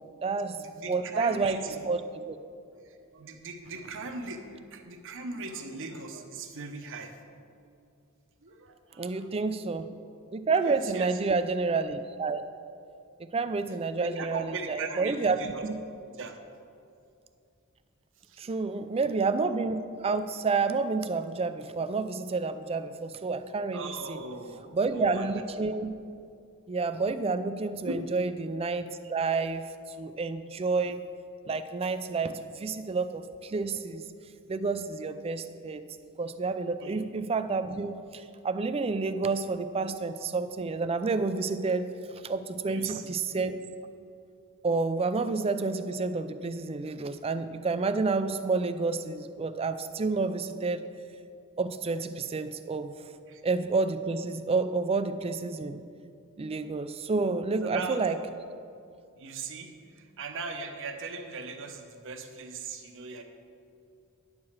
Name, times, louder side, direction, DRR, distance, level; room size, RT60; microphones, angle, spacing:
voice 1, 0.0-0.6 0.9-1.6 1.9-2.4 9.0-9.9 10.3-12.4 13.3-14.4 14.7-15.4 15.7-15.8 18.4-24.2 24.7-26.0 26.7-29.6 30.0-31.0 31.5-34.0 34.5-35.8 36.2-41.9 42.2-43.6 44.6-50.8 51.6-52.9 53.4-55.8 56.4-58.1, right 4 dB, 25° right, 11 dB, 0.4 m, -29 dB
voice 2, 0.6-1.8 3.1-7.1 8.4-9.5 10.6-11.2 14.0-15.7 16.1-16.4 18.3-18.5 23.7-25.4 27.8-28.1 36.8-37.0 42.6-43.1 53.3-53.4 57.6-58.0 59.1-63.2, right 4 dB, 60° right, 5 dB, 0.9 m, -39 dB
10.5 x 4.8 x 7.2 m, 2.5 s
head